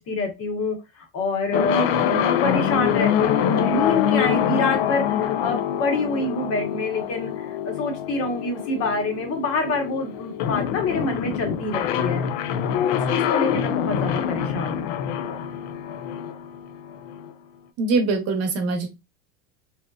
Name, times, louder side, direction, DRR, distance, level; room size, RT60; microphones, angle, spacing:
voice 1, 0.0-15.0, left 3 dB, 45° left, 4 dB, 1.0 m, -27 dB
sound 1, 1.5-17.3, left 9 dB, 65° left, 0.5 m, -25 dB
voice 2, 17.8-18.9, right 3 dB, 45° right, 6 dB, 0.9 m, -23 dB
2.8 x 2.0 x 2.3 m, 0.24 s
supercardioid pair, 105°, 34 cm